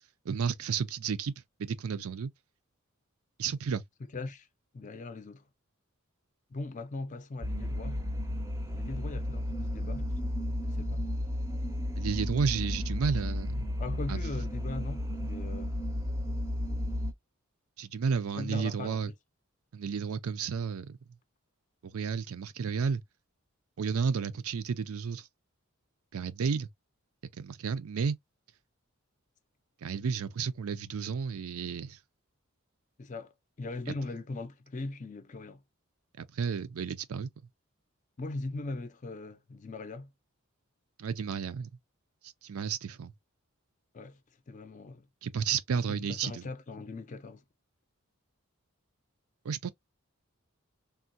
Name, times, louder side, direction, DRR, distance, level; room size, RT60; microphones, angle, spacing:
voice 1, 0.3-1.3 1.6-2.3 3.4-3.8 12.0-13.7 14.1-14.2 17.8-19.1 19.7-21.0 21.8-23.0 23.8-25.3 26.1-26.7 27.3-28.2 29.8-32.0 36.2-37.3 41.0-41.7 42.4-43.1 45.2-46.4 49.4-49.7, right 6 dB, 85° right, 0.4 m, -32 dB
voice 2, 4.1-4.5 4.7-5.5 6.5-8.0 8.7-10.1 10.7-11.1 13.8-15.8 18.3-19.0 33.0-35.6 38.2-40.1 43.9-44.2 44.5-45.1 46.0-47.4, left 2 dB, 35° left, 0.4 m, -40 dB
sound 1, 7.4-17.1, left 1 dB, 15° right, 0.5 m, -33 dB
3.5 x 2.2 x 2.5 m
head